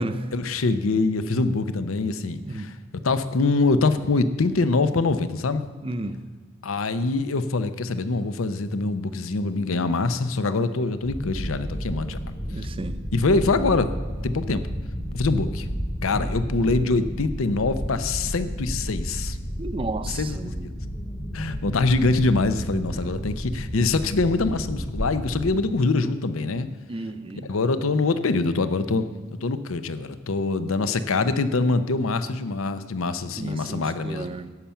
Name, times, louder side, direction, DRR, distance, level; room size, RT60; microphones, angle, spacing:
voice 1, 0.3-2.7 3.0-5.7 6.6-12.2 13.1-13.9 14.2-14.6 15.1-15.7 16.0-19.4 20.1-20.7 21.3-26.7 27.4-29.1 29.4-34.4, left 3 dB, 90° left, 12 dB, 0.7 m, -24 dB
voice 2, 2.4-2.7 5.8-6.2 12.5-13.0 16.1-16.3 19.6-20.6 22.9-23.2 26.9-27.5 33.4-34.5, right 2 dB, 25° right, 10 dB, 0.6 m, -33 dB
sound 1, 11.0-25.6, equal, 15° left, 0.9 m, -32 dB
12.5 x 5.8 x 8.6 m, 1.4 s
head